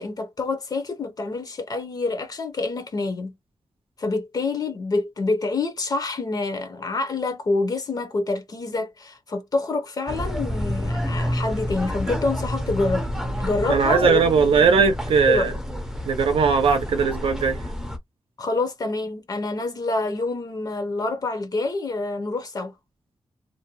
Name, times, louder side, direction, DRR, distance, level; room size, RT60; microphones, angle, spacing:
voice 1, 0.0-3.3 4.0-13.0 13.4-14.9 15.3-15.6 18.4-22.7, left 3 dB, 45° left, 0.6 m, -27 dB
sound 1, 10.1-18.0, equal, 5° right, 0.5 m, -29 dB
voice 2, 13.7-15.5 16.1-17.6, right 5 dB, 85° right, 0.6 m, -19 dB
2.5 x 2.1 x 2.8 m
wide cardioid pair, 130°, 9 cm